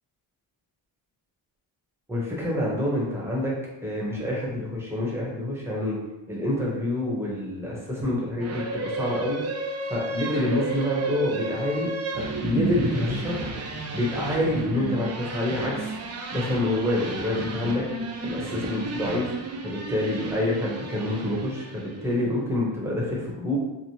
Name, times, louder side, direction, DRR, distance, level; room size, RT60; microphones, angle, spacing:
voice 1, 2.1-3.5 3.8-6.0 6.3-9.4 9.9-11.9 12.1-13.5 13.9-15.9 16.3-17.8 18.2-19.3 19.6-23.6, left 1 dB, 5° right, -4 dB, 0.7 m, -27 dB
sound 1, 8.4-22.0, right 3 dB, 35° right, 0.4 m, -32 dB
3.0 x 2.0 x 2.8 m, 1.0 s
cardioid pair, 100°, 49 cm